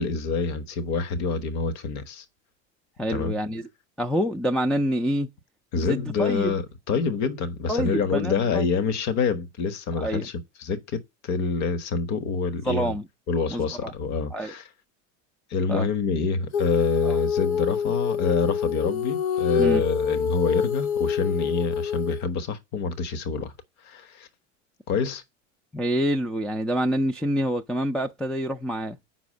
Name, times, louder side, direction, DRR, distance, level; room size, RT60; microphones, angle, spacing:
voice 1, 0.0-2.2 3.1-3.4 5.7-12.9 13.3-14.7 15.5-23.5 23.8-24.3 24.9-25.2, left 5 dB, 45° left, 1.4 m, -27 dB
voice 2, 3.0-3.7 4.0-5.3 5.8-6.6 7.7-8.7 10.0-10.3 12.7-13.0 13.5-13.9 14.3-14.5 15.7-15.9 17.0-17.2 19.6-19.9 25.7-29.0, equal, ahead, 0.4 m, -27 dB
Female singing, 16.5-22.2, left 7 dB, 65° left, 0.7 m, -26 dB
6.1 x 4.8 x 6.4 m
supercardioid pair, 110°, 37 cm